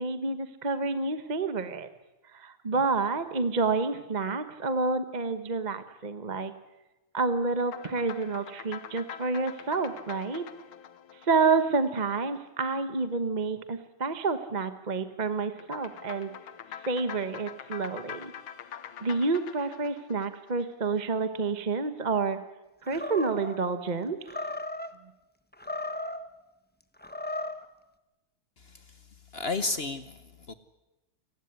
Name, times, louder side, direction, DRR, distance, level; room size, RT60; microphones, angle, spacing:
voice 1, 0.0-1.9 2.3-6.5 7.1-10.4 11.2-16.3 16.8-18.3 19.0-22.4 22.8-24.3, right 4 dB, 30° right, 10 dB, 0.8 m, -29 dB
sound 1, 7.6-12.3 15.6-21.0, left 9 dB, 70° left, 1.9 m, -44 dB
Animal, 22.9-23.6 24.3-24.9 25.5-26.3 27.0-27.7, left 1 dB, 10° left, 0.4 m, -35 dB
voice 2, 28.6-29.0 29.3-30.5, left 3 dB, 55° left, 11 dB, 0.6 m, -33 dB
28.5 x 16.0 x 9.6 m, 1.0 s
omnidirectional pair, 2.4 m